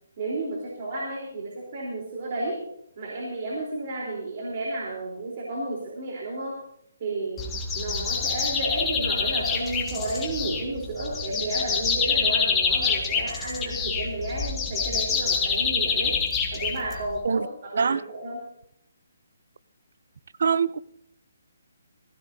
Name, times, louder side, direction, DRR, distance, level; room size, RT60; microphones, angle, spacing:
voice 1, 0.2-2.6 3.0-6.6 7.0-7.5 7.7-16.2 16.5-18.4, right 2 dB, 45° right, -3 dB, 3.7 m, -32 dB
sound 1, 7.4-17.2, left 5 dB, 15° left, 1.8 m, -26 dB
voice 2, 20.4-20.8, right 6 dB, 65° right, 18 dB, 0.6 m, -23 dB
18.5 x 16.0 x 2.7 m, 0.75 s
hypercardioid pair, 160°, 0 cm